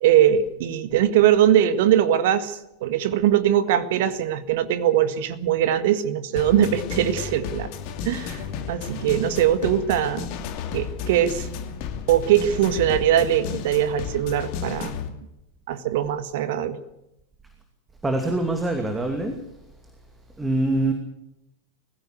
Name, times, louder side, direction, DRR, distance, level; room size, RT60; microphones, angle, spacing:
voice 1, 0.0-7.7 8.0-10.3 10.7-11.5 12.1-15.0 15.7-16.8, right 10 dB, 50° right, 12 dB, 1.7 m, -21 dB
sound 1, 6.4-15.1, left 7 dB, 45° left, 2.7 m, -33 dB
voice 2, 18.0-19.4 20.4-20.9, right 2 dB, 10° right, 5 dB, 2.6 m, -24 dB
22.0 x 16.0 x 8.2 m, 0.85 s
figure-of-eight pair, 90°, 0 cm